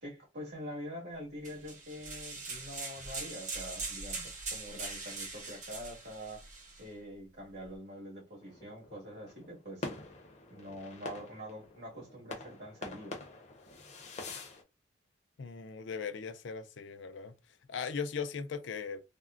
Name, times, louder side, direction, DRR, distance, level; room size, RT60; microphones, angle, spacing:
voice 1, 0.0-6.4 6.8-9.9 10.5-13.2, equal, 70° right, 1.8 m, -45 dB
sound 1, 1.4-6.8, right 3 dB, 45° right, 0.8 m, -42 dB
sound 2, 8.4-14.6, left 2 dB, 40° left, 0.5 m, -46 dB
voice 2, 15.4-17.3 17.7-19.0, left 6 dB, 90° left, 0.5 m, -38 dB
3.5 x 2.1 x 2.4 m
head